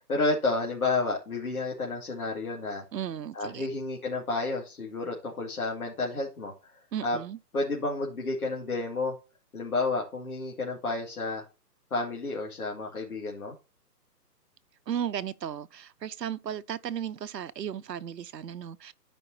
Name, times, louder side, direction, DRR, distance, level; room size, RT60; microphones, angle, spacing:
voice 1, 0.0-2.8 3.3-6.7 7.0-7.2 7.5-9.1 9.5-11.4 11.9-13.5, left 3 dB, 60° left, 2.3 m, -31 dB
voice 2, 2.9-3.7 6.9-7.4 14.9-18.9, right 9 dB, 85° right, 0.8 m, -35 dB
13.0 x 5.2 x 2.7 m
hypercardioid pair, 175°, 48 cm